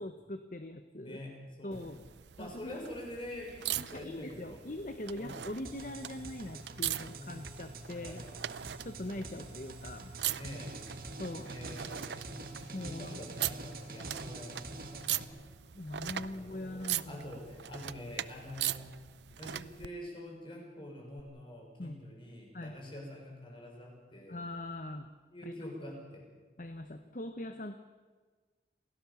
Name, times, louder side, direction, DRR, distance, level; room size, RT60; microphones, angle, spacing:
voice 1, 0.0-1.2 1.6-2.0 2.4-2.8 3.9-8.2 8.8-10.1 11.2-11.5 12.7-13.2 13.4-13.5 15.7-17.2 21.8-22.0 22.5-22.8 24.3-25.1 25.4-25.5 26.6-27.7, left 1 dB, 45° left, 8 dB, 1.0 m, -42 dB
voice 2, 1.0-1.9 2.4-4.6 5.1-5.5 7.1-7.4 7.8-8.4 8.9-9.4 10.3-10.7 11.4-12.3 12.8-15.4 16.1-18.9 19.3-24.4 25.3-26.2, left 1 dB, 30° left, 0 dB, 6.4 m, -46 dB
sound 1, 1.7-19.9 21.2-21.3, right 12 dB, 80° right, 0.6 m, -41 dB
sound 2, 5.6-15.2, right 2 dB, 55° right, 2.4 m, -46 dB
27.5 x 17.0 x 7.1 m, 1.4 s
head